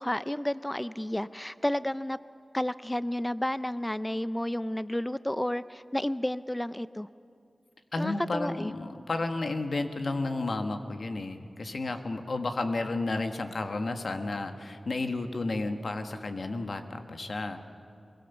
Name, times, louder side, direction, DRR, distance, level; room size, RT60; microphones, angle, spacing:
voice 1, 0.0-2.2 2.5-7.1 8.0-8.7, left 1 dB, 10° left, 15 dB, 0.5 m, -31 dB
voice 2, 7.9-17.6, left 2 dB, 70° left, 6 dB, 1.5 m, -32 dB
23.5 x 22.0 x 7.0 m, 2.6 s
wide cardioid pair, 65°, 0 cm